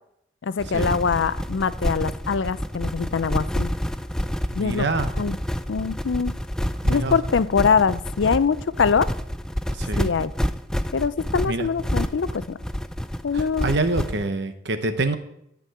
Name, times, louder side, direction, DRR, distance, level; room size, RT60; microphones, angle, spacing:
voice 1, 0.4-3.7 4.6-4.8 5.2-5.4 5.7-6.3 6.9-9.1 10.0-10.3 10.9-12.6 13.2-13.7, left 5 dB, 80° left, 16 dB, 0.5 m, -23 dB
sound 1, 0.6-14.3, equal, 5° left, 0.4 m, -28 dB
voice 2, 4.5-5.1 6.8-7.2 9.7-10.1 11.4-11.7 13.3-15.1, right 2 dB, 65° right, 9 dB, 1.0 m, -26 dB
11.5 x 5.3 x 7.8 m, 0.78 s
head